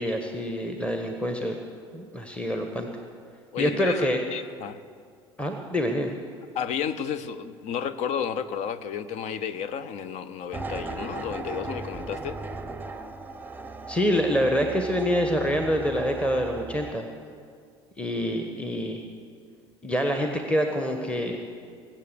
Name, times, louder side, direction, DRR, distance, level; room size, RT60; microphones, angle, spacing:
voice 1, 0.0-1.6 1.9-2.9 3.6-4.2 5.4-6.1 13.9-17.1 18.0-19.0 19.8-21.4, equal, 10° left, 3 dB, 1.3 m, -26 dB
voice 2, 3.5-4.8 6.5-12.4, left 7 dB, 50° left, 15 dB, 0.8 m, -32 dB
sound 1, 10.5-16.9, right 3 dB, 10° right, 0.8 m, -37 dB
22.5 x 7.5 x 6.9 m, 2.1 s
figure-of-eight pair, 65°, 14 cm